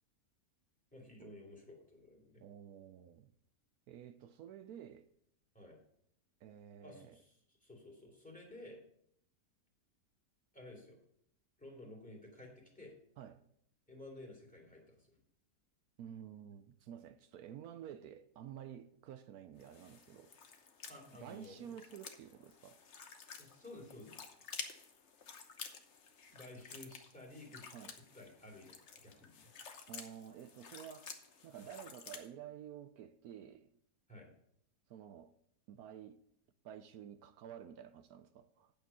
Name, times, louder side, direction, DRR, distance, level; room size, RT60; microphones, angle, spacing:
voice 1, 0.9-2.4 5.5-5.8 6.8-7.4 7.6-8.8 10.5-11.0 11.6-12.9 13.9-15.2 20.9-21.8 23.4-24.3 26.3-27.6 28.1-29.5 34.1-34.3, left 1 dB, 5° left, 2.6 m, -53 dB
voice 2, 2.4-3.3 3.9-5.1 6.4-7.2 13.2-13.4 16.0-20.3 21.1-22.8 27.7-27.9 29.9-31.1 31.4-33.7 34.9-35.3 35.7-36.2 36.6-38.7, right 9 dB, 75° right, 1.0 m, -51 dB
sound 1, 19.6-32.3, left 6 dB, 50° left, 1.1 m, -52 dB
8.8 x 7.0 x 5.4 m
omnidirectional pair, 1.7 m